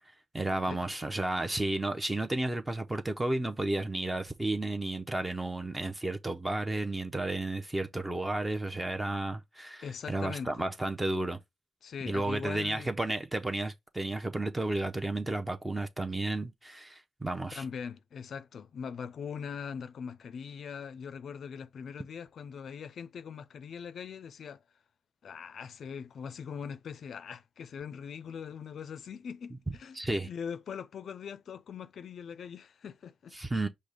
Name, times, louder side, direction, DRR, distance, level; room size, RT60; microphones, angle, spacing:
voice 1, 0.3-11.4 12.1-17.6 29.9-30.3 33.3-33.7, right 2 dB, 15° right, 0.6 m, -32 dB
voice 2, 9.8-10.5 11.8-12.9 17.5-24.6 25.2-33.3, left 7 dB, 60° left, 0.4 m, -41 dB
5.2 x 2.1 x 4.7 m
supercardioid pair, 65°, 0 cm